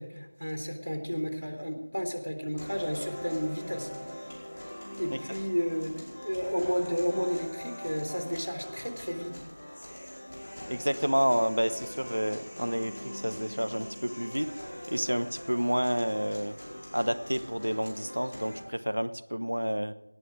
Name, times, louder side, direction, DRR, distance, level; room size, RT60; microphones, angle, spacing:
voice 1, 0.0-3.9 5.0-9.3, equal, 90° left, 6 dB, 3.4 m, -32 dB
sound 1, 2.6-18.6, equal, 35° left, 4.9 m, -42 dB
voice 2, 10.7-14.5 14.9-16.6 16.9-19.9, equal, 75° right, 13 dB, 1.0 m, -29 dB
18.0 x 10.0 x 4.9 m, 1.0 s
figure-of-eight pair, 175°, 0 cm